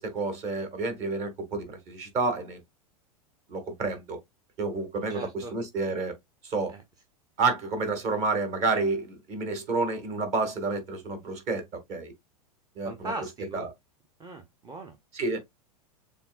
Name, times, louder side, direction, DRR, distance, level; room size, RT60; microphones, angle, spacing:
voice 1, 0.0-2.6 3.5-4.2 4.6-6.1 6.4-6.7 7.4-11.6 11.9-12.1 12.7-13.1 13.5-13.7 15.1-15.4, right 3 dB, 35° right, 1.7 m, -29 dB
voice 2, 5.1-5.5 6.7-6.8 12.8-13.7 14.2-15.0, right 2 dB, 20° right, 0.8 m, -39 dB
6.9 x 2.6 x 2.2 m
figure-of-eight pair, 95°, 20 cm